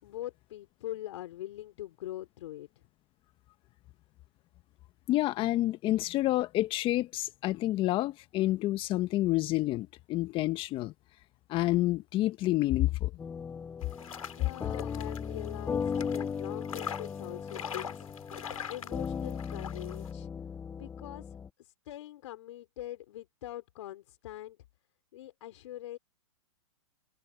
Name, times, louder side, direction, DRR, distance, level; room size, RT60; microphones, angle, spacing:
voice 1, 0.0-2.7 14.3-18.1 18.7-20.3 20.7-24.6 25.1-26.0, left 14 dB, 60° left, 4.5 m, -43 dB
voice 2, 5.1-10.9 11.5-13.1 14.7-14.8, left 16 dB, 30° left, 1.2 m, -28 dB
sound 1, 13.2-21.5, left 6 dB, 10° left, 0.7 m, -37 dB
sound 2, 13.8-20.1, left 8 dB, 90° left, 3.3 m, -43 dB
hypercardioid pair, 130°, 17 cm